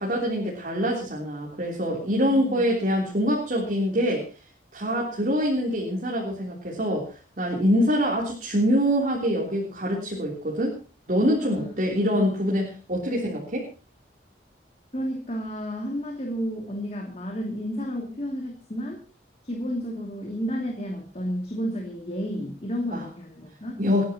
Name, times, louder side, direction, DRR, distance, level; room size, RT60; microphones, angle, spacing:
voice 1, 0.0-4.3 4.7-10.8 11.1-13.7 22.9-23.0 23.8-24.0, equal, 50° right, -3 dB, 3.5 m, -25 dB
voice 2, 2.3-2.6 11.4-12.3 14.9-19.0 19.4-23.8, equal, 40° left, 1 dB, 2.6 m, -32 dB
29.0 x 10.5 x 3.0 m, 0.33 s
head